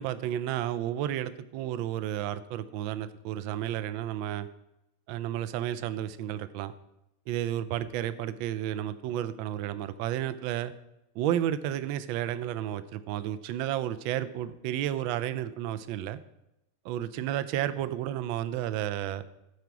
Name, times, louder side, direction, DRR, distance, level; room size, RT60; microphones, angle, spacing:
voice 1, 0.0-4.5 5.1-6.7 7.3-10.7 11.2-16.2 16.8-19.2, right 11 dB, 75° right, 14 dB, 1.2 m, -32 dB
13.5 x 4.6 x 6.0 m, 0.88 s
omnidirectional pair, 2.4 m